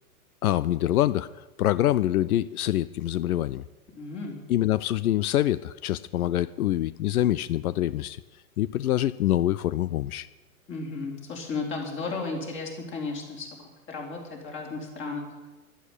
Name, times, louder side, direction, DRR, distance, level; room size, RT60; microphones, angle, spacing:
voice 1, 0.4-1.3 1.6-3.6 4.5-8.2 8.6-10.3, left 13 dB, 85° left, 18 dB, 0.6 m, -25 dB
voice 2, 4.0-4.4 10.7-13.5 13.9-15.3, left 3 dB, 25° left, 0 dB, 4.3 m, -34 dB
11.5 x 11.5 x 9.8 m, 1.2 s
hypercardioid pair, 145°, 43 cm